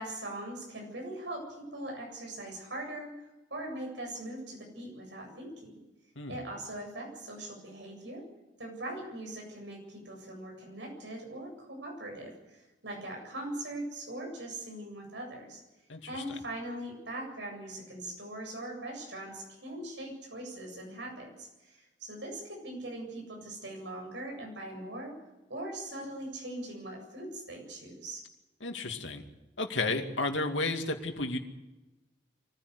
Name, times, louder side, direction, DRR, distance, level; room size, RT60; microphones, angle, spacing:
voice 1, 0.0-3.2 3.5-5.7 6.3-8.2 8.6-15.6 16.1-25.1 25.5-28.3, right 1 dB, 75° right, 1 dB, 7.8 m, -41 dB
voice 2, 15.9-16.2 28.6-29.2 29.6-31.4, left 2 dB, 90° left, 4 dB, 2.5 m, -32 dB
23.5 x 15.5 x 8.2 m, 1.1 s
head